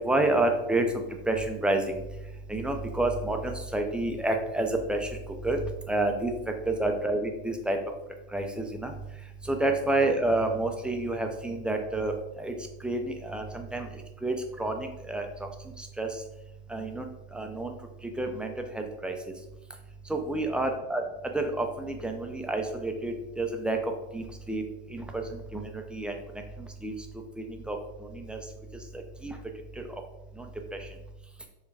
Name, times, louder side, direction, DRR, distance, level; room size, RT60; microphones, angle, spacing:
voice 1, 0.0-2.0 2.5-5.2 5.4-5.6 5.9-6.3 6.7-7.8 8.3-8.9 9.4-12.1 12.4-12.5 12.8-13.9 14.2-15.5 15.8-16.1 16.7-17.1 17.3-17.8 18.2-19.1 20.1-21.0 21.3-24.6 24.9-26.1 26.6-26.9 27.4-27.8 28.1-28.4 29.2-29.4 29.8-29.9 30.4-30.5 30.8-30.9, right 2 dB, 5° right, 3 dB, 0.5 m, -29 dB
6.7 x 2.3 x 3.3 m, 0.92 s
hypercardioid pair, 95°, 33 cm